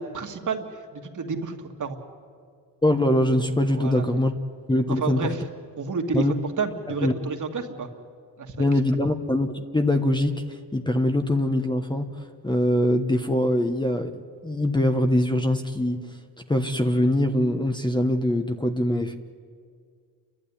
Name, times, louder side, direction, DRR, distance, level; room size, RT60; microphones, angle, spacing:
voice 1, 0.0-2.0 3.7-4.0 4.9-5.4 5.8-7.9 8.4-8.6 8.9-9.0, right 4 dB, 45° right, 3 dB, 2.3 m, -30 dB
voice 2, 2.8-4.3 4.7-5.3 6.1-6.3 7.0-7.1 8.6-16.0 16.5-19.2, left 1 dB, 10° left, 6 dB, 1.1 m, -23 dB
29.5 x 12.0 x 10.0 m, 2.2 s
cardioid pair, 85°, 41 cm